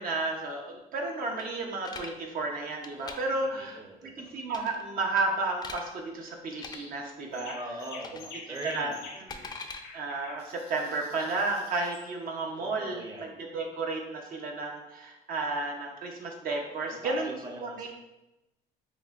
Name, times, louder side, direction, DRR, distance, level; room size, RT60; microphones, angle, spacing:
voice 1, 0.0-7.6 8.1-8.3 8.6-8.9 9.9-17.3 17.6-17.9, right 3 dB, 55° right, 1 dB, 0.7 m, -32 dB
sound 1, 1.4-2.1 2.7-3.2 4.5-4.8 5.2-5.8 6.5-6.8 8.0-8.3 8.6-9.8, left 4 dB, 25° left, 0.4 m, -42 dB
voice 2, 3.4-4.4 7.5-9.0 12.6-13.6 16.8-17.9, right 1 dB, 20° right, 0 dB, 0.6 m, -41 dB
sound 2, 6.6-6.9 7.3-12.1, left 4 dB, 85° left, 0.9 m, -48 dB
5.9 x 2.1 x 2.4 m, 0.94 s
cardioid pair, 110°, 17 cm